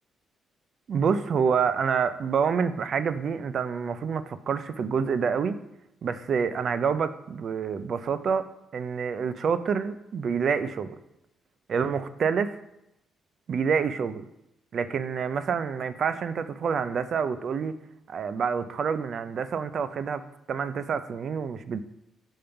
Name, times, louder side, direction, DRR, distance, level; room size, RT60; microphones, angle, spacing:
voice 1, 0.9-5.6 6.0-8.5 8.7-11.0 11.7-12.6 13.5-14.2 14.7-17.7 18.1-20.2 20.5-21.8, right 6 dB, 55° right, 13 dB, 0.5 m, -27 dB
5.5 x 5.1 x 5.7 m, 0.85 s
cardioid pair, 90°, 0 cm